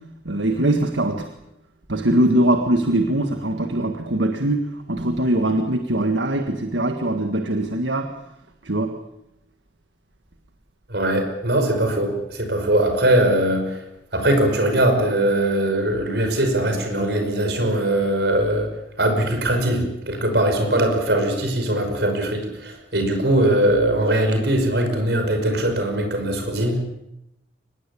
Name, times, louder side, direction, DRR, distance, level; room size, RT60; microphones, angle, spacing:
voice 1, 0.3-1.3 1.9-8.1 8.6-8.9, right 1 dB, 75° right, 6 dB, 1.7 m, -22 dB
voice 2, 10.9-13.8 14.1-18.7 19.0-26.8, right 1 dB, 60° right, 5 dB, 5.7 m, -21 dB
24.5 x 20.0 x 8.6 m, 0.85 s
head